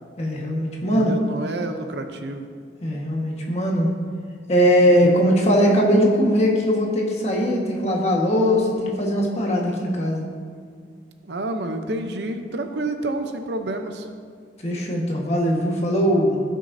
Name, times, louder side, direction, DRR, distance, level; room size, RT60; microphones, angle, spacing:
voice 1, 0.2-1.1 2.8-3.9 4.5-10.3 14.6-16.4, equal, 35° left, -1 dB, 1.5 m, -20 dB
voice 2, 0.9-2.5 4.8-5.1 11.2-14.1, right 2 dB, 65° right, 6 dB, 0.7 m, -29 dB
16.5 x 6.4 x 2.7 m, 2.1 s
head